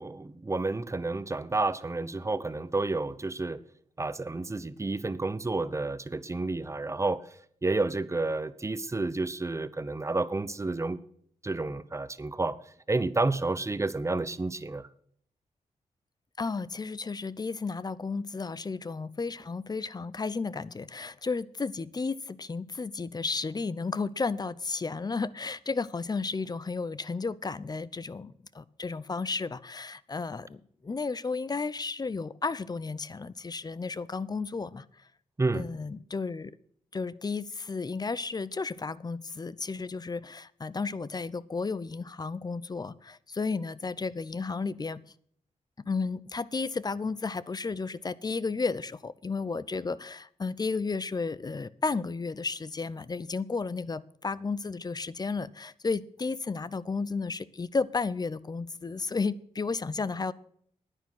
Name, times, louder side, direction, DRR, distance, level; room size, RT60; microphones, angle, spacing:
voice 1, 0.0-3.6 4.0-7.2 7.6-11.0 11.4-12.6 12.9-14.9 35.4-35.7, right 3 dB, 20° right, 15 dB, 0.9 m, -30 dB
voice 2, 16.4-34.8 35.5-36.5 36.9-45.0 45.9-60.3, left 4 dB, 30° left, 18 dB, 0.6 m, -33 dB
10.5 x 9.6 x 6.1 m, 0.63 s
cardioid pair, 70°, 13 cm